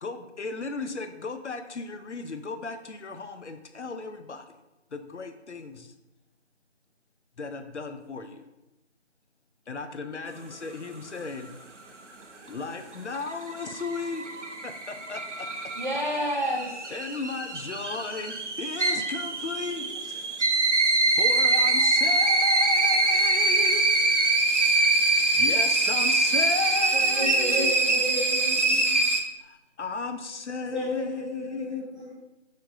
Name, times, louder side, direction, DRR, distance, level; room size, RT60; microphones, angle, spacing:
voice 1, 0.0-4.5 4.9-5.9 7.4-8.4 9.7-11.5 12.5-14.2 14.6-15.5 16.9-19.9 21.2-23.9 25.4-27.7 29.4-31.9, left 4 dB, 75° left, 8 dB, 0.5 m, -35 dB
sound 1, 12.9-29.2, right 2 dB, 80° right, 0.7 m, -24 dB
voice 2, 15.7-16.9 19.9-20.0 21.6-23.0 26.7-27.4, equal, 40° right, 0 dB, 0.7 m, -33 dB
voice 3, 27.2-29.0 30.7-32.1, equal, 25° right, -9 dB, 1.4 m, -33 dB
5.6 x 3.2 x 2.5 m, 1.0 s
figure-of-eight pair, 170°, 36 cm